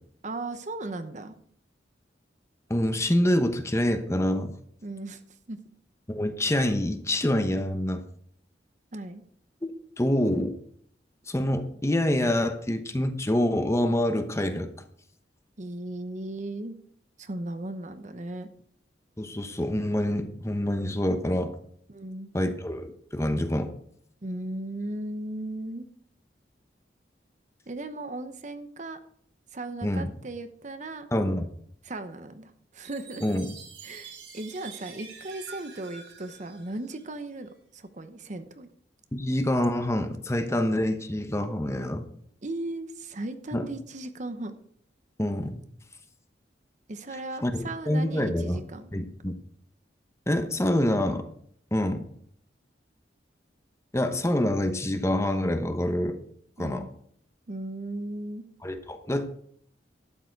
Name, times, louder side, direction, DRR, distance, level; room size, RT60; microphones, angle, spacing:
voice 1, 0.2-1.3 4.8-5.2 5.5-5.6 8.9-9.2 15.6-16.7 17.2-18.5 21.9-22.3 24.2-25.9 27.7-29.0 29.5-31.1 31.8-33.4 33.8-38.7 42.4-44.6 46.9-48.9 56.6-56.9 57.5-58.4, right 2 dB, 45° right, 10 dB, 0.9 m, -37 dB
voice 2, 2.7-4.5 6.1-8.0 10.0-10.6 11.3-14.7 19.2-21.5 22.3-23.7 29.8-30.1 31.1-31.4 33.2-33.5 39.1-42.0 43.5-43.7 45.2-45.6 47.4-48.6 48.9-49.3 50.3-51.2 51.7-52.0 53.9-56.2 56.6-56.8 58.6-59.3, left 1 dB, 15° left, 8 dB, 1.0 m, -26 dB
Chime, 32.8-37.4, right 5 dB, 80° right, 4.8 m, -47 dB
12.0 x 9.0 x 4.6 m, 0.63 s
head